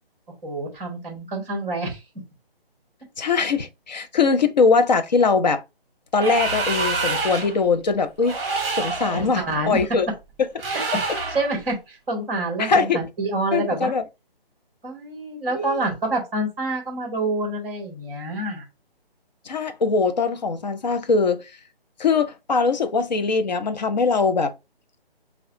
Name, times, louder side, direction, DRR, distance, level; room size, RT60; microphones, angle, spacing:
voice 1, 0.4-2.0 9.1-9.8 11.3-13.9 14.8-18.6, right 2 dB, 5° right, 1.3 m, -27 dB
voice 2, 3.2-5.6 6.1-8.4 8.7-10.1 10.4-10.5 12.6-13.0 13.5-14.0 15.5-15.8 19.5-21.4 22.0-24.5, left 4 dB, 45° left, 0.6 m, -21 dB
sound 1, 6.1-7.6 8.2-9.2 10.6-11.5, right 3 dB, 30° right, 1.1 m, -26 dB
5.5 x 2.4 x 2.6 m
figure-of-eight pair, 155°, 30 cm